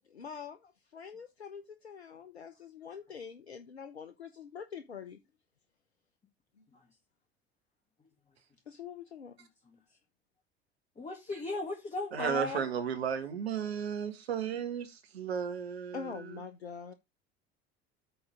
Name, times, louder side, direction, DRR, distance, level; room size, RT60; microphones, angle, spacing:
voice 1, 0.1-5.2 8.7-9.3 15.9-16.9, left 6 dB, 85° left, 0.7 m, -45 dB
voice 2, 11.0-12.7, left 2 dB, 20° left, 2.0 m, -37 dB
voice 3, 12.1-16.4, right 7 dB, 75° right, 1.6 m, -34 dB
8.7 x 3.9 x 5.0 m
figure-of-eight pair, 70°, 32 cm